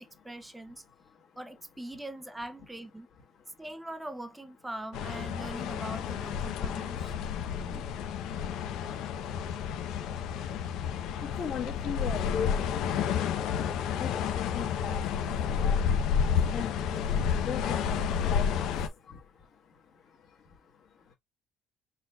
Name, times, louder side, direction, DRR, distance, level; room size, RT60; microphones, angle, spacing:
voice 1, 0.0-0.8 1.4-3.1 3.6-7.1, right 1 dB, 5° right, 0.6 m, -42 dB
voice 2, 0.9-1.4 3.3-3.6 6.5-21.1, left 7 dB, 45° left, 1.4 m, -42 dB
sound 1, 4.9-18.9, left 7 dB, 60° left, 0.7 m, -30 dB
4.2 x 4.1 x 2.3 m
cardioid pair, 155°, 0 cm